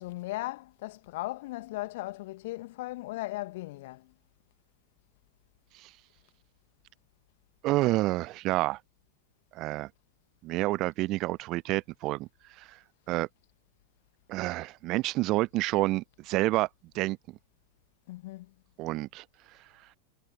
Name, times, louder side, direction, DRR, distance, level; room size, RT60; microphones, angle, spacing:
voice 1, 0.0-4.1 18.1-18.5, left 19 dB, 50° left, 2.4 m, -37 dB
voice 2, 7.6-8.8 9.5-9.9 10.4-12.3 12.6-12.8 13.1-13.3 14.3-16.7 16.9-17.2 18.8-19.2, right 19 dB, 40° right, 0.8 m, -28 dB
figure-of-eight pair, 90°, 0 cm